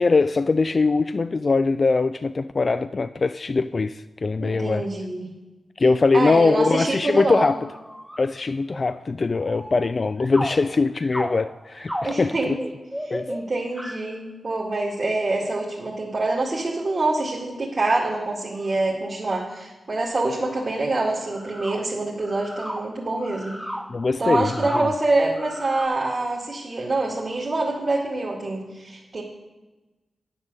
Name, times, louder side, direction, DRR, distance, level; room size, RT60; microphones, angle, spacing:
voice 1, 0.0-4.9 5.8-7.6 8.2-12.6 13.1-13.3 23.9-24.8, left 3 dB, 50° left, 12 dB, 0.3 m, -22 dB
voice 2, 4.4-5.3 6.1-7.5 12.0-12.6 13.0-23.6 24.2-29.2, right 2 dB, 50° right, -5 dB, 2.2 m, -25 dB
sound 1, 7.7-8.3 8.7-9.0 9.3-14.2 17.5-17.6 18.5-19.2 19.5-19.6 20.1-20.2 20.4-20.8 21.3-25.9, equal, ahead, 1.0 m, -35 dB
9.3 x 7.2 x 6.8 m, 1.1 s
supercardioid pair, 45°, 0 cm